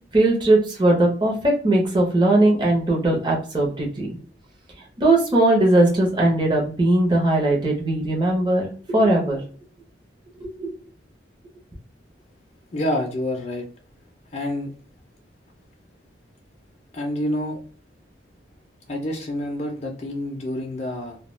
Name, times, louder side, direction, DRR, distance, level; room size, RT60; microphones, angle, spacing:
voice 1, 0.1-4.1 5.0-9.4 10.4-10.7, right 1 dB, 25° right, -2 dB, 0.7 m, -19 dB
voice 2, 12.7-13.6 14.3-14.7 16.9-17.6 18.9-21.2, left 1 dB, 35° left, 0 dB, 0.4 m, -27 dB
2.2 x 2.2 x 3.0 m, 0.43 s
head